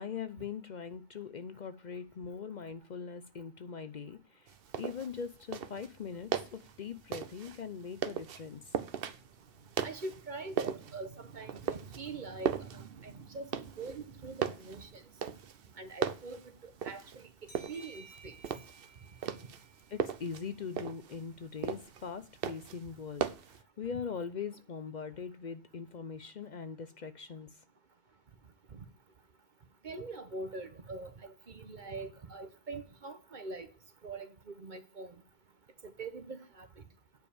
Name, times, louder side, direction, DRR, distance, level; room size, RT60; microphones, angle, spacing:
voice 1, 0.0-8.8 19.9-27.6, left 6 dB, 50° left, 0.7 m, -41 dB
sound 1, 4.5-23.6, right 8 dB, 65° right, 0.9 m, -39 dB
voice 2, 9.8-15.0 15.8-17.3 17.7-18.4 28.7-28.9 29.8-33.7 34.0-35.2 35.8-36.8, right 3 dB, 50° right, 1.2 m, -44 dB
sound 2, 17.5-20.8, right 4 dB, 75° left, 4.1 m, -57 dB
9.2 x 5.3 x 7.0 m
omnidirectional pair, 1.1 m